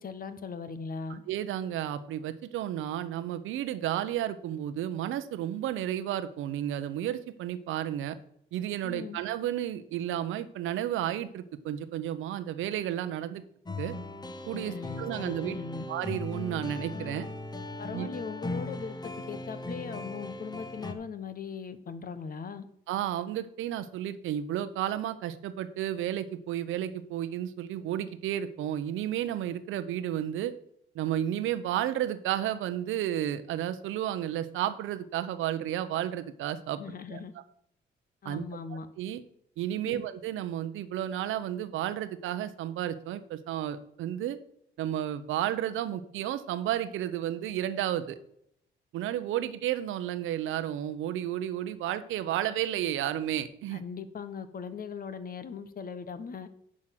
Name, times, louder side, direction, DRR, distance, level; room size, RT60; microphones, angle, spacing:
voice 1, 0.0-1.2 8.8-9.2 14.6-15.9 17.8-22.7 36.8-37.3 38.2-38.9 39.8-40.0 53.7-56.5, left 5 dB, 45° left, 12 dB, 1.2 m, -39 dB
voice 2, 1.3-8.2 8.5-13.4 13.8-13.9 14.5-15.6 15.9-17.3 17.9-18.1 22.9-30.5 30.9-36.8 37.1-37.2 38.2-38.4 39.0-39.2 39.6-44.4 44.8-48.2 48.9-53.8, right 11 dB, 85° right, 12 dB, 0.9 m, -32 dB
sound 1, 13.7-20.9, left 2 dB, 20° left, 1.2 m, -38 dB
10.0 x 6.3 x 5.9 m, 0.72 s
cardioid pair, 90°, 20 cm